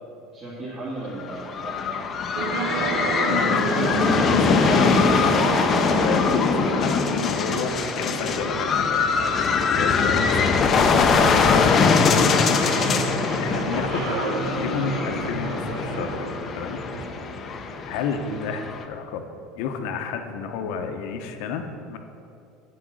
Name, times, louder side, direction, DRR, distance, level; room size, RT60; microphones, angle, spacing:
voice 1, 0.3-2.1 4.7-5.0 12.8-13.2 18.3-18.5, right 2 dB, 35° right, -8 dB, 2.1 m, -36 dB
sound 1, 1.2-18.8, left 5 dB, 25° left, 0.6 m, -22 dB
sound 2, 2.3-18.1, right 3 dB, 65° right, 1.3 m, -30 dB
voice 2, 3.3-5.5 6.0-12.0 12.3-12.6 13.4-14.1 14.6-16.3 16.6-16.8 17.9-19.3 19.6-22.0, left 6 dB, 70° left, 6 dB, 0.9 m, -31 dB
7.8 x 6.3 x 7.7 m, 2.6 s
cardioid pair, 155°, 0 cm